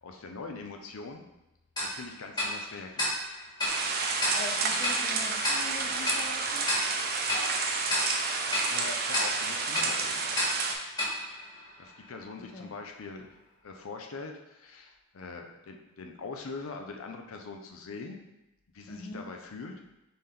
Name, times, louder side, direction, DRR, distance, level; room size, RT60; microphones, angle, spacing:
voice 1, 0.0-1.2 1.8-3.2 8.7-10.3 11.8-18.2 18.7-19.7, left 4 dB, 80° left, 3 dB, 0.6 m, -42 dB
Tick-tock, 1.8-12.2, left 1 dB, 20° left, 1.4 m, -34 dB
sound 1, 3.7-10.8, right 4 dB, 45° right, 0.5 m, -30 dB
voice 2, 4.3-6.7 12.3-12.8 18.9-19.4, left 3 dB, 35° left, 2 dB, 0.4 m, -42 dB
4.2 x 3.4 x 3.7 m, 0.94 s
head